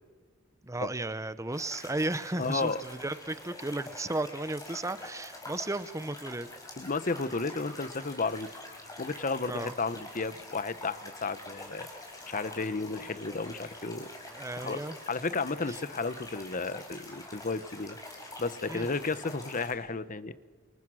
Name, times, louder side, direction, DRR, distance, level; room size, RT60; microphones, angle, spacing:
voice 1, 0.6-6.5 9.5-9.7 14.0-15.0 15.7-15.8 18.7-18.9, right 2 dB, 15° right, 13 dB, 0.9 m, -34 dB
sound 1, 1.5-19.7, left 2 dB, 15° left, 5.2 m, -46 dB
voice 2, 2.4-2.8 6.8-8.5 9.0-11.9 12.3-14.1 14.6-18.0 18.4-20.3, left 3 dB, 40° left, 14 dB, 1.0 m, -33 dB
29.5 x 28.5 x 6.3 m, 1.5 s
head